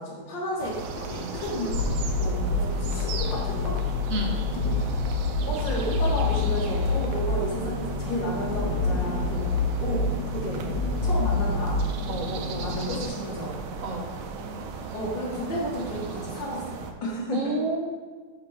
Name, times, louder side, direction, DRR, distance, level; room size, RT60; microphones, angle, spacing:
voice 1, 0.0-1.8 2.2-3.8 5.4-9.5 9.8-10.7 11.0-11.8 12.6-13.6 14.9-17.5, equal, 60° left, -5 dB, 2.3 m, -32 dB
sound 1, 0.6-16.9, right 5 dB, 80° right, 1.4 m, -37 dB
sound 2, 0.9-13.1, left 3 dB, 75° left, 1.0 m, -27 dB
voice 2, 4.1-4.4 12.1-12.7 13.8-14.1 17.3-17.8, right 2 dB, 55° right, 2 dB, 0.9 m, -30 dB
7.7 x 3.1 x 5.6 m, 1.5 s
omnidirectional pair, 2.4 m